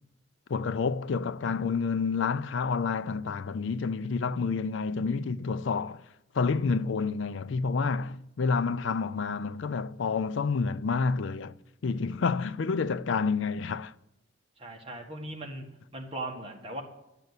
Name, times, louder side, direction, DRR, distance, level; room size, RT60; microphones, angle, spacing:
voice 1, 0.5-6.0 6.3-11.5 11.8-13.9, left 5 dB, 70° left, 0.4 m, -29 dB
voice 2, 14.6-15.6 15.9-16.8, right 1 dB, 30° right, 1.7 m, -38 dB
10.5 x 6.6 x 8.2 m
head